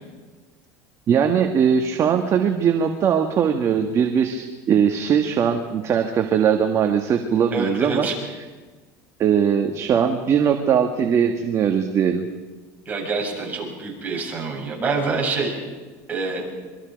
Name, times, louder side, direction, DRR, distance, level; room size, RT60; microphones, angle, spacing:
voice 1, 1.1-8.1 9.2-12.2, right 7 dB, 35° right, 4 dB, 1.6 m, -20 dB
voice 2, 7.5-8.2 12.9-15.5 16.1-16.5, right 4 dB, 20° right, -2 dB, 7.8 m, -26 dB
26.0 x 24.0 x 5.3 m, 1.3 s
supercardioid pair, 135°, 9 cm